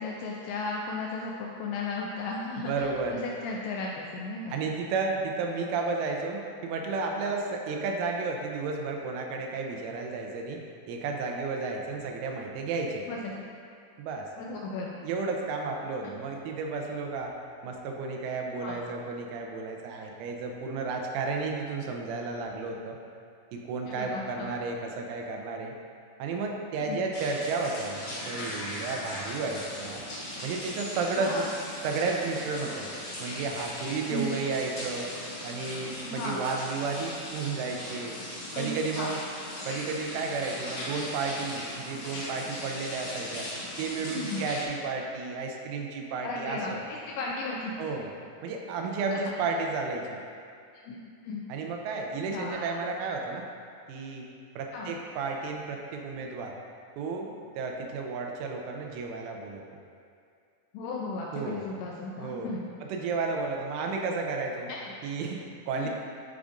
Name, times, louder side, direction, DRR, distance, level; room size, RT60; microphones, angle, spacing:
voice 1, 0.0-3.0 3.2-4.6 7.2-7.3 13.1-13.3 14.4-14.9 18.6-18.8 23.9-24.5 26.8-27.0 31.2-31.5 34.1-34.4 36.0-36.4 38.5-39.1 44.1-44.4 46.2-48.0 49.1-49.2 50.9-51.5 52.3-52.7 54.7-54.9 60.7-62.7 64.7-64.9 65.8-65.9, left 3 dB, 85° left, -2 dB, 2.5 m, -35 dB
voice 2, 2.6-3.2 4.5-13.1 14.0-14.3 15.0-17.3 17.6-23.0 23.5-25.7 26.2-30.0 30.4-31.5 31.8-32.9 33.2-35.1 35.4-38.2 38.6-39.2 39.7-43.5 43.8-46.8 47.8-48.1 48.4-50.2 51.5-53.5 53.9-54.3 54.6-56.6 57.0-59.6 61.3-61.6 62.2-62.5 62.8-64.7 65.0-65.9, right 4 dB, 85° right, 1 dB, 3.2 m, -32 dB
sound 1, 27.1-44.6, left 1 dB, 65° left, 1.4 m, -39 dB
11.5 x 4.9 x 2.5 m, 2.3 s
omnidirectional pair, 5.5 m